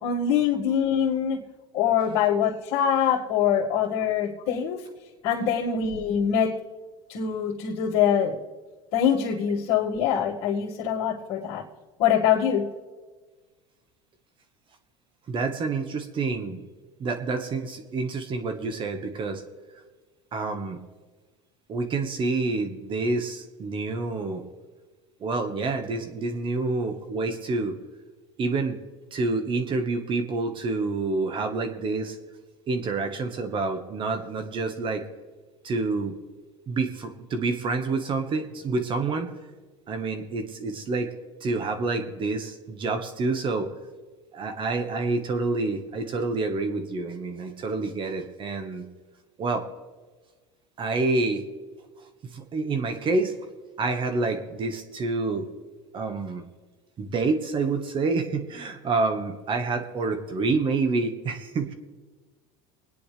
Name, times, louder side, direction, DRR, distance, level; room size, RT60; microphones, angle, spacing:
voice 1, 0.0-1.4 1.7-4.8 5.2-6.6 7.1-8.4 8.9-11.6 12.0-12.7, left 8 dB, 65° left, -8 dB, 2.0 m, -24 dB
voice 2, 15.3-16.6 17.0-19.4 20.3-20.8 21.7-24.4 25.2-27.8 28.4-28.8 29.1-32.2 32.7-35.0 35.6-36.1 36.7-39.3 39.9-41.1 41.4-43.7 44.3-48.9 49.4-49.7 50.8-51.4 52.3-53.3 53.8-55.5 55.9-56.5 57.0-61.7, right 3 dB, 40° right, 7 dB, 1.5 m, -28 dB
24.5 x 9.9 x 3.4 m, 1.4 s
supercardioid pair, 105°, 13 cm